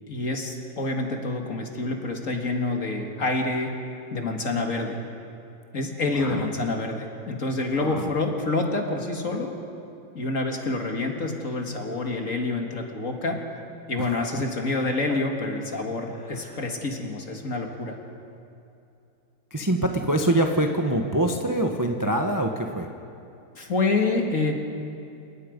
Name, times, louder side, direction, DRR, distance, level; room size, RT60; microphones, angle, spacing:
voice 1, 0.1-3.7 4.1-5.0 5.7-9.5 10.1-13.4 13.9-18.0 23.5-24.5, left 3 dB, 45° left, 2 dB, 2.3 m, -27 dB
voice 2, 19.5-22.9, right 1 dB, 15° right, 3 dB, 0.8 m, -25 dB
29.5 x 18.0 x 5.2 m, 2.7 s
omnidirectional pair, 2.0 m